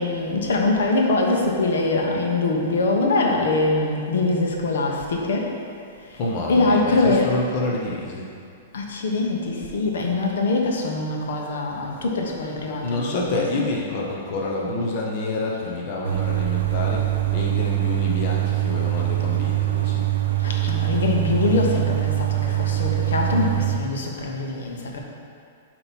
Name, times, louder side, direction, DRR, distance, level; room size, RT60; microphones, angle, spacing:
voice 1, 0.0-5.5 6.5-7.3 8.7-13.7 20.4-25.0, left 2 dB, 75° left, 0 dB, 1.0 m, -23 dB
voice 2, 6.1-8.3 12.8-20.1, left 2 dB, 30° left, -3 dB, 0.6 m, -28 dB
sound 1, 16.0-23.8, right 15 dB, 75° right, 0.6 m, -23 dB
8.1 x 3.0 x 5.4 m, 2.4 s
hypercardioid pair, 175°, 0 cm